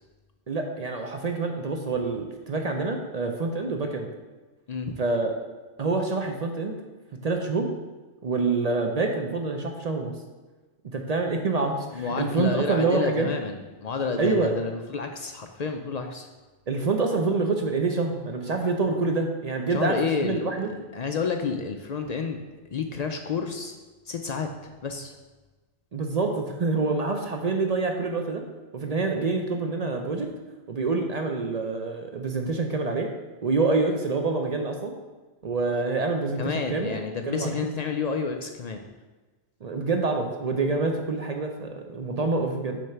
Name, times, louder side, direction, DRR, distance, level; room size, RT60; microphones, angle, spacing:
voice 1, 0.5-4.1 5.0-5.3 5.8-6.8 7.2-7.7 8.2-10.1 10.9-13.3 14.2-14.5 16.7-20.7 25.9-28.4 28.7-30.3 30.7-33.1 33.4-34.9 35.4-37.6 39.6-42.8, right 3 dB, 45° right, 4 dB, 0.5 m, -26 dB
voice 2, 4.7-5.0 11.9-16.3 19.7-20.5 20.9-22.4 22.7-23.7 24.1-25.2 36.4-38.8, left 5 dB, 65° left, 5 dB, 0.4 m, -30 dB
6.3 x 3.4 x 5.7 m, 1.3 s
omnidirectional pair, 1.2 m